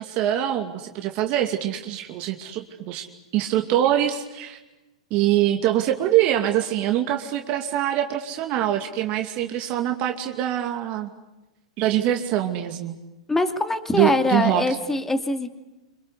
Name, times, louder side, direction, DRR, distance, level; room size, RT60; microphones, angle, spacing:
voice 1, 0.0-3.1 3.3-4.6 5.1-11.1 11.8-13.0 13.9-14.8, right 12 dB, 45° right, 4 dB, 2.5 m, -24 dB
voice 2, 13.3-15.5, left 2 dB, 10° left, 7 dB, 2.5 m, -23 dB
26.5 x 26.0 x 8.3 m, 1.0 s
hypercardioid pair, 110°, 3 cm